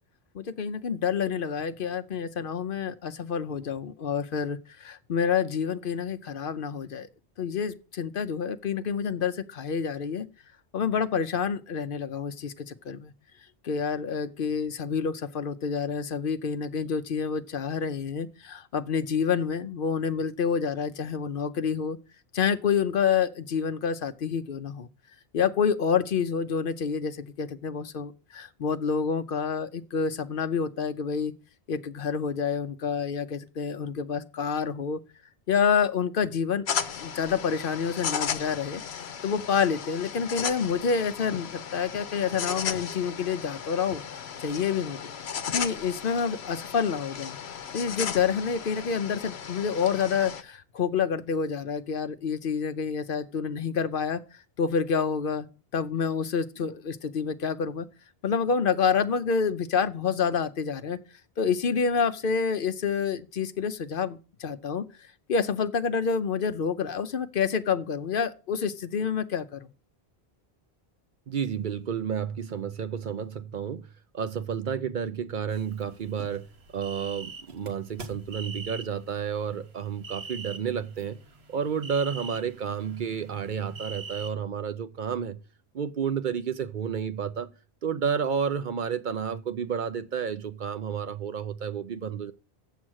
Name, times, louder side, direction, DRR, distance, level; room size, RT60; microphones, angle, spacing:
voice 1, 0.3-7.1 7.4-10.3 10.7-13.1 13.6-22.0 22.3-24.9 25.3-31.3 31.7-35.0 35.5-36.6 37.0-38.8 39.2-44.0 44.4-45.1 45.5-47.4 47.7-54.2 54.6-55.5 55.7-57.9 58.2-61.0 61.4-64.8 65.3-69.7, left 6 dB, 60° left, 0.8 m, -28 dB
sound 1, 36.7-50.4, left 7 dB, 85° left, 1.0 m, -35 dB
voice 2, 71.3-73.8 74.1-76.4 76.7-81.2 81.5-85.4 85.7-87.5 87.8-92.3, right 7 dB, 55° right, 0.7 m, -31 dB
sound 2, 75.5-84.3, right 3 dB, 80° right, 1.6 m, -43 dB
8.2 x 7.4 x 6.3 m
omnidirectional pair, 1.0 m